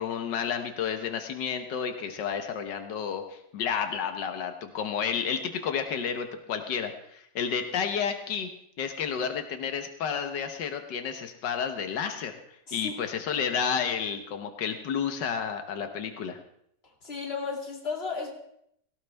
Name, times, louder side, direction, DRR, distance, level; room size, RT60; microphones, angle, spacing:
voice 1, 0.0-8.5 8.8-12.4 12.7-16.4, left 7 dB, 90° left, 7 dB, 1.7 m, -31 dB
voice 2, 16.8-18.3, left 4 dB, 35° left, 0 dB, 2.8 m, -34 dB
17.5 x 17.0 x 3.4 m, 0.72 s
omnidirectional pair, 1.8 m